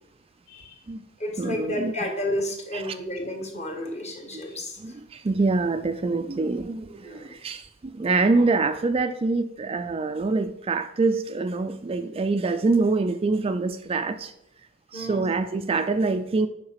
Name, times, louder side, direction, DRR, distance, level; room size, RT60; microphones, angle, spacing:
voice 1, 0.5-0.8 1.2-4.9 7.0-7.4 14.9-15.3, left 1 dB, 35° left, 1.7 m, -32 dB
voice 2, 1.4-1.9 4.8-14.3 14.9-16.5, right 3 dB, 30° right, 0.4 m, -25 dB
7.7 x 5.7 x 5.7 m
head